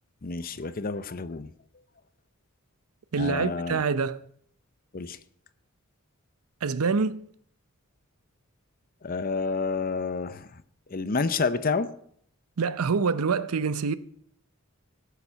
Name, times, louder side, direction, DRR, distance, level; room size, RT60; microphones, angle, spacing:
voice 1, 0.2-1.5 3.2-3.8 4.9-5.2 9.0-10.6 10.9-11.9, left 4 dB, 40° left, 0.7 m, -29 dB
voice 2, 3.1-4.2 6.6-7.3 12.6-13.9, right 5 dB, 85° right, 0.6 m, -26 dB
16.0 x 7.1 x 5.7 m
head